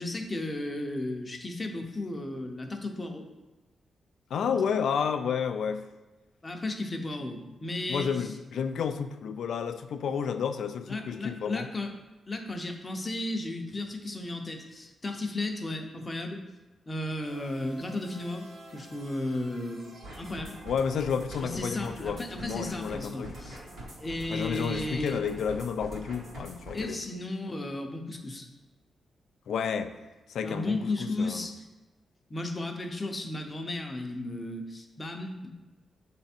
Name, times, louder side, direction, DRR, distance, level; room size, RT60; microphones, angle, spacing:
voice 1, 0.0-3.3 6.4-8.3 10.9-11.9 12.3-16.4 16.9-20.6 21.4-23.6 24.0-25.2 26.7-28.5 30.4-31.6 32.3-35.5, left 2 dB, 20° left, 3 dB, 0.6 m, -34 dB
voice 2, 4.3-5.9 7.9-11.7 20.7-23.4 24.3-27.0 29.5-29.9 30.3-31.5, left 7 dB, 75° left, 9 dB, 0.4 m, -31 dB
sound 1, 17.2-21.5, right 1 dB, 50° right, 1.1 m, -50 dB
sound 2, 20.0-26.9, right 1 dB, 65° right, 1.9 m, -44 dB
7.9 x 3.4 x 4.3 m, 1.2 s
wide cardioid pair, 170°, 0 cm